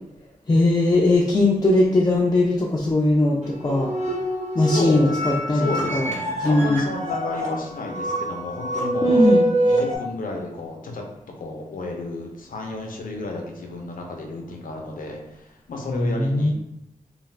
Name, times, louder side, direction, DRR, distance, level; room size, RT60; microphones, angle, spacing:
voice 1, 0.5-3.9 4.5-6.1 6.4-6.8 9.0-9.5 15.9-16.5, left 2 dB, 25° left, -3 dB, 0.4 m, -19 dB
sound 1, 3.4-10.0, right 1 dB, 60° right, 0.8 m, -25 dB
voice 2, 4.6-5.2 5.5-9.3 9.7-11.0 11.4-16.5, left 2 dB, 75° left, 1 dB, 0.6 m, -32 dB
2.5 x 2.4 x 3.1 m, 0.85 s
wide cardioid pair, 155°, 14 cm